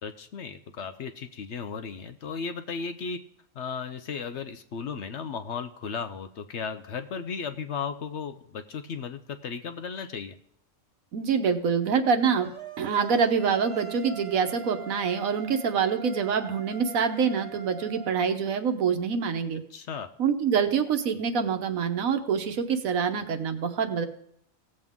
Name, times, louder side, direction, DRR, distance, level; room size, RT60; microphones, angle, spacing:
voice 1, 0.0-3.2 3.5-10.4 19.7-20.1, left 6 dB, 60° left, 9 dB, 0.9 m, -35 dB
voice 2, 11.1-12.5 12.8-19.6 20.2-24.1, right 6 dB, 75° right, 7 dB, 1.4 m, -26 dB
sound 1, 12.4-18.2, right 5 dB, 25° right, 1.3 m, -42 dB
17.0 x 7.6 x 3.6 m, 0.70 s
omnidirectional pair, 1.5 m